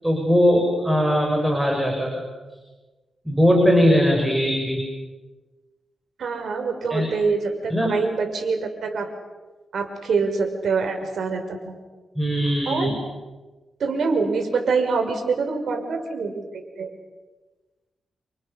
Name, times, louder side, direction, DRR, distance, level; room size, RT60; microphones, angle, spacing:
voice 1, 0.0-2.2 3.2-4.8 6.9-7.1 7.7-8.0 12.2-13.0, equal, 5° right, 1 dB, 6.1 m, -20 dB
voice 2, 6.2-9.1 9.7-11.8 12.7-12.9 13.8-16.4 16.8-16.9, right 4 dB, 70° right, 4 dB, 6.0 m, -25 dB
30.0 x 28.0 x 6.8 m, 1.2 s
cardioid pair, 105°, 0 cm